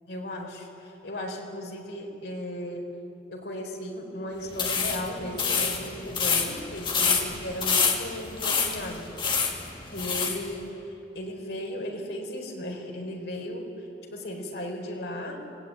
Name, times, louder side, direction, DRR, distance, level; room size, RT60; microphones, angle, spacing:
voice 1, 0.1-2.9 3.3-9.0 9.9-13.7 14.1-15.5, left 1 dB, 75° left, 1 dB, 4.6 m, -36 dB
sound 1, 4.5-10.4, left 5 dB, 30° left, 2.4 m, -27 dB
27.0 x 19.0 x 9.2 m, 2.8 s
head